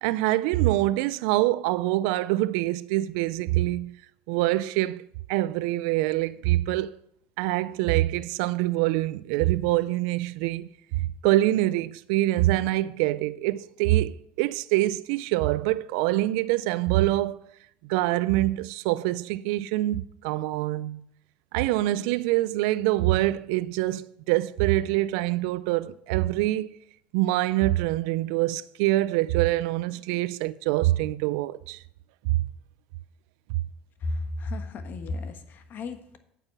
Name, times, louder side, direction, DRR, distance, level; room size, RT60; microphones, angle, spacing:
voice 1, 0.0-3.9 4.3-5.0 5.3-7.0 7.4-10.7 10.9-17.4 17.8-21.0 21.5-26.7 27.1-31.8 32.3-32.4, right 16 dB, 80° right, 0.4 m, -25 dB
voice 2, 34.0-36.2, left 2 dB, 50° left, 1.3 m, -33 dB
8.9 x 5.9 x 7.3 m
supercardioid pair, 85°, 4 cm